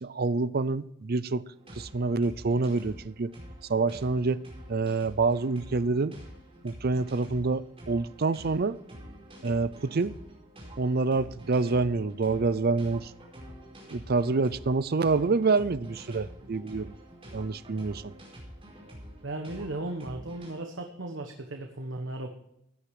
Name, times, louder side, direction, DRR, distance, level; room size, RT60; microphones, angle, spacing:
voice 1, 0.0-1.4 1.8-3.3 3.7-4.4 4.7-6.1 6.6-8.8 9.4-10.1 10.8-13.1 13.9-16.9 17.3-18.1, right 3 dB, 50° right, 0.5 m, -27 dB
sound 1, 1.5-20.5, equal, 30° right, 4.9 m, -47 dB
voice 2, 19.2-22.3, right 2 dB, 65° right, 1.3 m, -36 dB
15.0 x 10.0 x 4.9 m
head